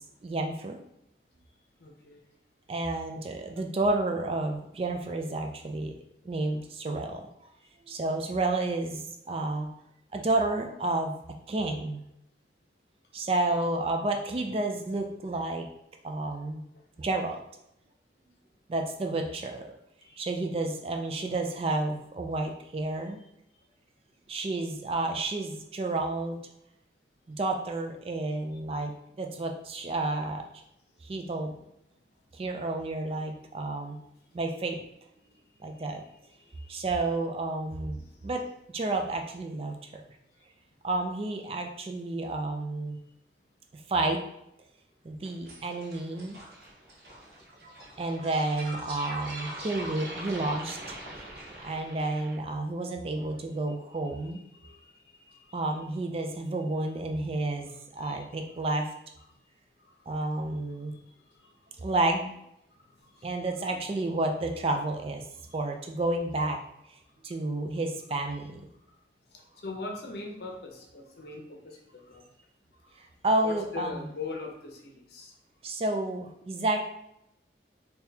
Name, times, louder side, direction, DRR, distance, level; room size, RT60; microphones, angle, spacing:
voice 1, 0.2-0.8 2.7-5.9 6.3-7.2 7.9-9.7 10.1-11.1 11.5-12.0 13.1-15.7 16.0-16.6 17.0-17.4 18.7-19.6 20.2-23.2 24.3-26.4 27.3-30.4 31.0-31.5 32.4-34.0 34.3-34.8 35.6-36.0 36.7-38.0 38.2-38.4 38.7-39.8 40.8-43.0 43.9-44.2 45.0-46.4 48.0-51.0 51.6-54.4 55.5-58.9 60.1-60.9 61.8-62.4 63.2-65.2 65.5-66.6 67.2-68.6 73.2-74.0 75.6-76.8, right 2 dB, 30° right, 3 dB, 0.3 m, -30 dB
voice 2, 1.8-2.2 13.2-13.6 20.1-20.3 28.5-28.6 31.5-31.6 35.8-36.8 37.9-38.3 47.7-47.8 53.7-53.8 54.1-55.6 56.8-56.9 57.5-57.6 58.0-58.7 59.8-59.9 61.0-61.5 63.0-63.8 65.3-65.6 68.3-68.4 69.3-72.2 73.4-75.3, left 3 dB, 60° left, 2 dB, 0.6 m, -43 dB
sound 1, 45.2-52.4, right 1 dB, 65° right, 0.8 m, -42 dB
3.8 x 2.7 x 2.7 m, 0.82 s
head